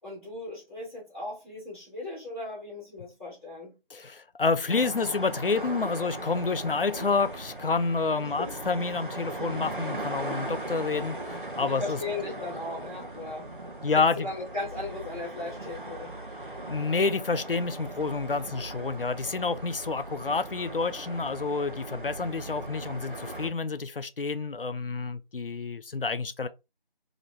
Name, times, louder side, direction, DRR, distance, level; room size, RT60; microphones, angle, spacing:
voice 1, 0.0-3.8 8.2-8.5 11.6-13.5 13.9-16.2, left 2 dB, 15° left, 2.0 m, -37 dB
voice 2, 3.9-12.0 13.8-14.3 16.7-26.5, left 4 dB, 70° left, 0.5 m, -29 dB
sound 1, 4.7-23.5, right 1 dB, 60° right, 0.8 m, -39 dB
4.3 x 2.9 x 2.6 m
figure-of-eight pair, 175°, 29 cm